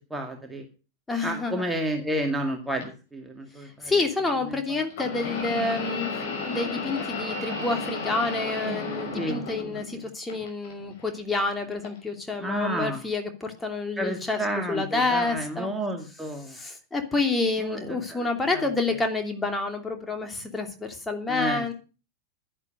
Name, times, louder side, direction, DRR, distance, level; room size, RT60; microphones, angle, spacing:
voice 1, 0.1-0.7 1.2-3.9 9.1-10.0 12.4-13.0 14.0-16.6 17.6-18.7 21.3-21.7, right 1 dB, 10° right, 3 dB, 2.1 m, -31 dB
voice 2, 1.1-1.6 3.8-14.4 14.7-15.7 16.5-21.7, left 3 dB, 10° left, 4 dB, 2.8 m, -28 dB
sound 1, 2.8-2.9 4.9-10.0 10.3-11.1 11.8-12.0 13.0-13.1, left 3 dB, 55° left, 6.3 m, -33 dB
11.5 x 10.5 x 6.5 m, 0.34 s
figure-of-eight pair, 90°, 0 cm